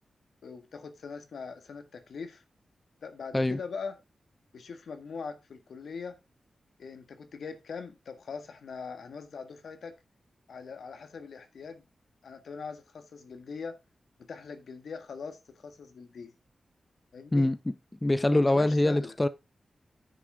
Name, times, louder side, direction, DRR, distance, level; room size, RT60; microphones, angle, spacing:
voice 1, 0.4-2.4 3.0-4.0 4.5-6.2 6.8-10.0 10.5-11.8 12.2-13.8 14.2-16.3 17.1-17.5 18.3-19.1, left 5 dB, 80° left, 1.6 m, -41 dB
voice 2, 18.0-19.3, left 1 dB, 15° left, 0.5 m, -24 dB
9.9 x 7.7 x 3.5 m
wide cardioid pair, 145°, 0 cm